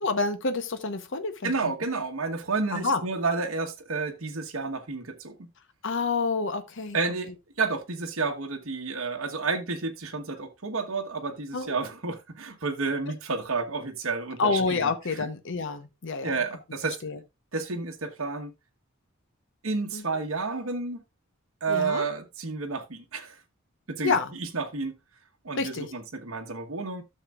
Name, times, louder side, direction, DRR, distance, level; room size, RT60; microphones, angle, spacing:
voice 1, 0.0-1.7 2.7-3.0 5.8-7.0 11.5-11.8 14.4-16.4 17.0-17.2 19.9-20.0 21.7-22.1 24.0-24.3 25.6-25.9, left 4 dB, 60° left, 1.0 m, -28 dB
voice 2, 1.4-5.3 6.9-7.3 7.6-14.9 15.2-15.3 16.2-17.0 17.5-18.5 19.6-21.0 21.6-23.4 23.9-24.9 25.4-27.0, right 4 dB, 70° right, 1.2 m, -30 dB
13.0 x 6.6 x 2.4 m
head